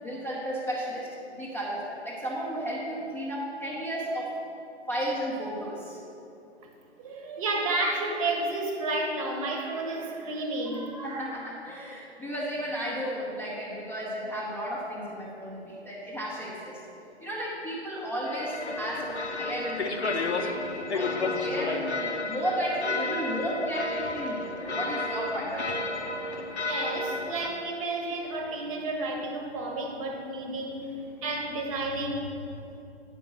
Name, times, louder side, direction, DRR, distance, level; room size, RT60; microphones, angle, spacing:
voice 1, 0.0-4.3 4.9-6.0 11.0-16.8 17.2-21.9 22.3-25.9, equal, 5° left, -7 dB, 0.7 m, -33 dB
voice 2, 7.0-11.3 26.7-32.5, right 2 dB, 30° right, 3 dB, 1.0 m, -31 dB
sound 1, 18.3-27.5, left 3 dB, 75° left, 0.8 m, -32 dB
8.9 x 5.2 x 6.1 m, 2.8 s
figure-of-eight pair, 120°, 34 cm